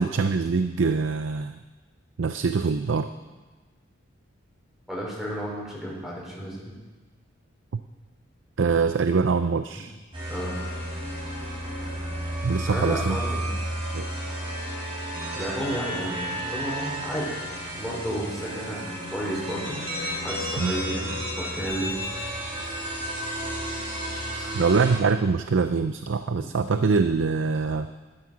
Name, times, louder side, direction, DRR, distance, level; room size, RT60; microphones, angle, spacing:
voice 1, 0.0-1.6 2.2-3.1 8.6-10.0 12.4-13.2 13.9-14.1 20.6-20.7 24.5-27.9, right 4 dB, 65° right, 9 dB, 0.5 m, -24 dB
voice 2, 4.9-6.7 10.3-10.6 12.7-13.6 15.3-17.3 17.8-19.8 20.2-21.9 24.3-24.6, equal, ahead, -4 dB, 4.3 m, -32 dB
sound 1, 10.1-25.0, equal, 25° right, 4.7 m, -32 dB
12.0 x 12.0 x 6.2 m, 1.2 s
head